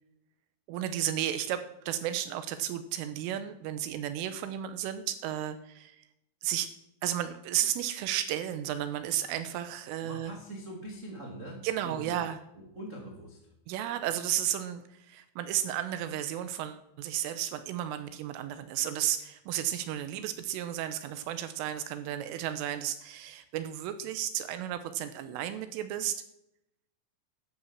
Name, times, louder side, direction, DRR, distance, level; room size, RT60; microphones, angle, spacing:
voice 1, 0.7-6.0 6.4-6.7 7.0-10.3 11.6-12.4 13.7-26.2, right 11 dB, 80° right, 10 dB, 3.3 m, -33 dB
voice 2, 10.0-12.2 12.5-13.4, right 1 dB, 55° right, -1 dB, 0.8 m, -43 dB
11.0 x 10.0 x 7.2 m, 0.82 s
omnidirectional pair, 5.9 m